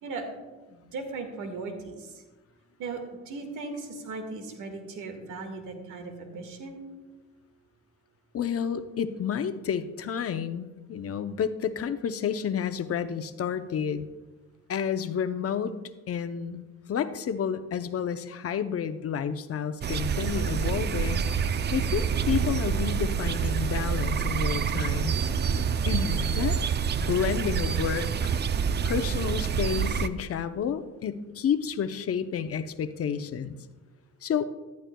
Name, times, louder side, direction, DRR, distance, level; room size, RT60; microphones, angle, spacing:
voice 1, 0.0-0.3 0.7-2.2 2.8-6.8, right 3 dB, 85° right, 5 dB, 1.8 m, -37 dB
voice 2, 8.3-14.1 14.7-15.8 16.1-16.6 16.9-21.2 21.7-25.1 25.9-26.6 27.0-28.3 28.8-33.6 34.2-34.5, left 7 dB, 50° left, 11 dB, 0.7 m, -30 dB
sound 1, 19.8-30.1, right 7 dB, 35° right, 0.5 m, -27 dB
14.5 x 11.5 x 2.3 m, 1.2 s
cardioid pair, 90°, 30 cm